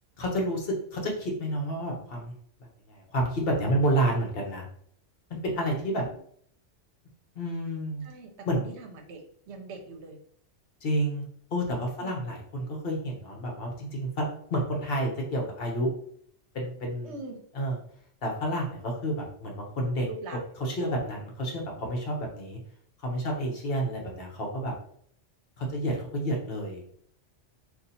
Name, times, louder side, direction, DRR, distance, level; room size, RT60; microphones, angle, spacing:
voice 1, 0.2-2.3 2.9-4.7 5.3-6.0 7.4-8.1 8.5-8.6 10.8-11.2 11.5-14.2 14.5-15.9 16.5-17.1 17.5-17.8 18.2-20.1 20.6-22.6 23.0-24.7 25.6-26.8, right 1 dB, 55° left, 0 dB, 0.9 m, -29 dB
voice 2, 8.0-10.2 12.0-12.2 17.0-17.4 20.0-20.4, right 3 dB, 70° right, 4 dB, 0.9 m, -42 dB
2.7 x 2.4 x 4.0 m, 0.62 s
omnidirectional pair, 1.2 m